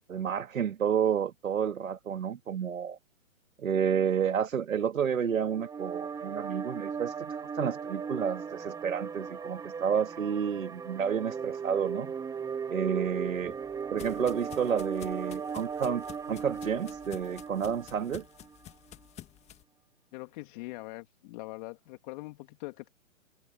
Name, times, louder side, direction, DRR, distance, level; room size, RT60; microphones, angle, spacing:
voice 1, 0.1-3.0 3.6-12.1 12.7-13.5 13.9-18.3, right 7 dB, 75° right, 2.3 m, -30 dB
sound 1, 5.2-18.5, right 6 dB, 10° right, 1.9 m, -37 dB
sound 2, 13.0-19.6, left 12 dB, 15° left, 1.6 m, -51 dB
voice 2, 20.1-22.9, left 22 dB, 35° left, 2.5 m, -42 dB
hypercardioid pair, 140°, 40 cm